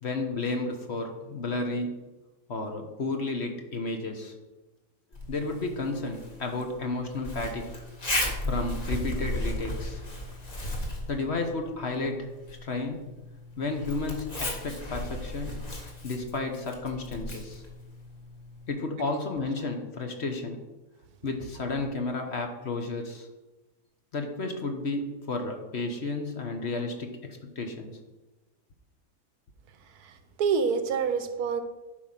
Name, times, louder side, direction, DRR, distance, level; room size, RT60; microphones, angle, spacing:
voice 1, 0.0-2.0 2.5-4.3 5.3-7.8 8.5-10.0 11.1-12.3 12.6-13.1 13.6-15.6 16.0-17.6 18.7-20.6 21.2-23.3 24.1-28.0, left 3 dB, 45° left, 4 dB, 1.1 m, -32 dB
Zipper (clothing), 5.1-18.7, left 1 dB, 25° left, 1.4 m, -36 dB
voice 2, 29.9-31.6, right 6 dB, 75° right, 9 dB, 1.3 m, -27 dB
11.5 x 4.7 x 5.7 m, 1.1 s
omnidirectional pair, 1.7 m